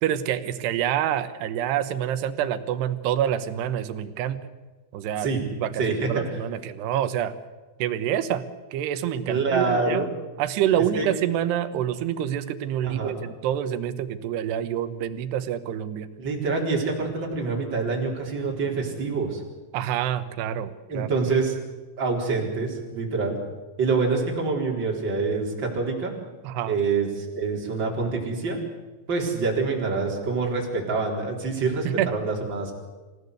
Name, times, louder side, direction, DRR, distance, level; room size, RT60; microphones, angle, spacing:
voice 1, 0.0-4.4 4.9-5.3 5.6-5.8 6.1-7.3 7.8-8.4 8.7-10.0 10.4-16.1 19.7-21.1 26.4-26.8 31.9-32.1, right 10 dB, 75° right, 12 dB, 3.0 m, -27 dB
voice 2, 5.8-6.2 9.3-10.1 10.9-11.1 12.8-13.1 16.2-19.4 20.9-21.6 22.0-23.4 23.8-26.1 26.6-28.6 29.1-32.7, right 4 dB, 25° right, -1 dB, 4.4 m, -26 dB
26.0 x 16.5 x 8.2 m, 1.3 s
omnidirectional pair, 5.2 m